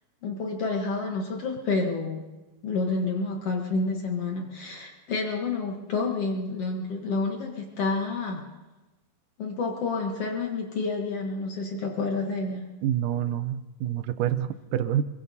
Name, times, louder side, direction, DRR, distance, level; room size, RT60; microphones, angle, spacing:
voice 1, 0.2-2.3 2.6-8.4 9.4-12.7, left 3 dB, 65° left, 1 dB, 1.5 m, -29 dB
voice 2, 12.8-15.0, right 11 dB, 80° right, 9 dB, 1.9 m, -27 dB
24.0 x 22.5 x 2.7 m, 1.1 s
omnidirectional pair, 4.3 m